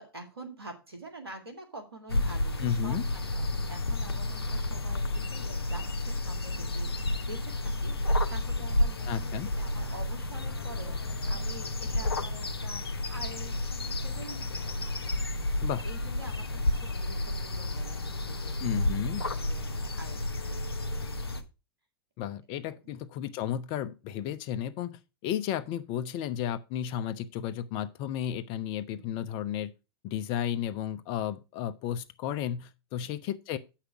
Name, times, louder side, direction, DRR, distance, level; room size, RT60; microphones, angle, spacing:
voice 1, 0.0-14.9 15.8-21.1 22.7-23.0 24.8-25.0 28.9-29.3 33.0-33.2, right 2 dB, 90° right, 2.2 m, -47 dB
sound 1, 2.1-21.4, left 1 dB, 85° left, 1.0 m, -31 dB
voice 2, 2.6-3.0 9.1-9.5 15.6-15.9 18.6-19.2 22.2-24.9 25.2-29.7 30.0-33.6, left 10 dB, 45° left, 0.9 m, -33 dB
8.2 x 5.9 x 5.1 m
hypercardioid pair, 100°, 12 cm